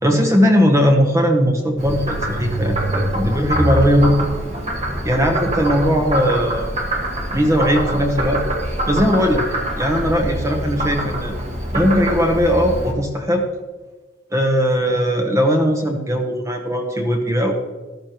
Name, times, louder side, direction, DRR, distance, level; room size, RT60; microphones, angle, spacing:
voice 1, 0.0-4.3 5.0-6.7 7.3-8.4 8.9-9.5 9.8-11.3 11.7-13.4 14.3-17.5, equal, 15° right, 2 dB, 1.0 m, -18 dB
Frog, 1.8-12.9, right 1 dB, 35° right, 1.8 m, -24 dB
13.0 x 12.5 x 3.1 m, 1.2 s
head